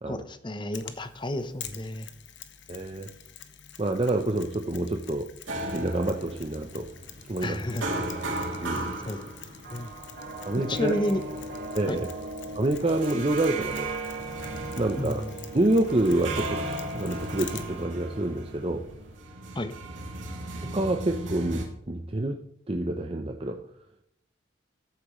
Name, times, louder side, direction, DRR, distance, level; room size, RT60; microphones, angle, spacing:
voice 1, 0.0-2.1 7.4-7.9 9.0-9.3 9.7-9.9 10.7-11.2 11.9-12.0 15.0-15.4 19.5-19.7, left 1 dB, 25° left, 11 dB, 0.8 m, -31 dB
Mechanisms, 0.7-17.8, left 9 dB, 70° left, 1.1 m, -47 dB
voice 2, 2.7-3.1 3.8-5.3 5.7-6.9 7.3-7.6 8.6-8.9 10.4-11.0 11.7-12.1 12.5-13.9 14.8-15.2 15.5-18.8 20.6-23.6, right 1 dB, 30° right, 4 dB, 0.7 m, -27 dB
sound 1, 5.5-21.7, right 2 dB, 85° right, 2.9 m, -36 dB
14.0 x 8.5 x 3.2 m, 0.73 s
head